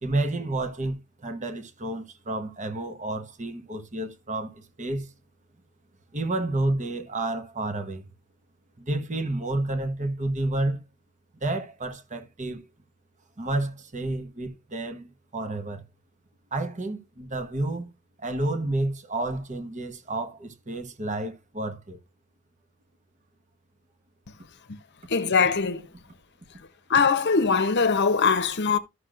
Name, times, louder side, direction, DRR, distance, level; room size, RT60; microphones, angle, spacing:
voice 1, 0.0-5.1 6.1-8.1 8.8-10.8 11.4-12.7 13.4-15.8 16.5-17.9 18.2-22.0, right 2 dB, 35° right, 1.1 m, -30 dB
voice 2, 25.1-25.8 26.9-28.8, left 5 dB, 55° left, 0.8 m, -22 dB
13.5 x 6.3 x 2.5 m
head